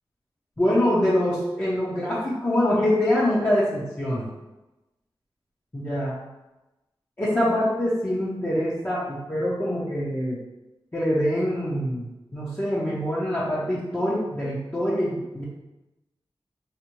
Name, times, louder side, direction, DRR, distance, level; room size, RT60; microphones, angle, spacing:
voice 1, 0.6-4.3 5.7-6.2 7.2-10.4 10.9-12.1 12.3-15.4, left 1 dB, 25° left, -9 dB, 0.7 m, -24 dB
4.9 x 2.0 x 2.9 m, 1.0 s
wide cardioid pair, 85°, 9 cm